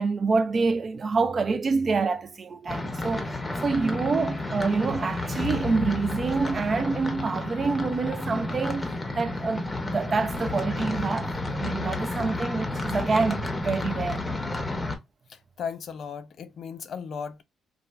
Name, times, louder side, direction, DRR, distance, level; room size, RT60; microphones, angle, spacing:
voice 1, 0.0-14.2, right 4 dB, 40° right, 0.4 m, -27 dB
sound 1, 2.7-15.0, left 2 dB, 20° left, 0.7 m, -31 dB
sound 2, 3.1-7.8, left 3 dB, 15° right, 0.7 m, -41 dB
voice 2, 15.3-17.4, left 6 dB, 60° left, 0.4 m, -36 dB
3.1 x 2.4 x 2.3 m
cardioid pair, 90°, 0 cm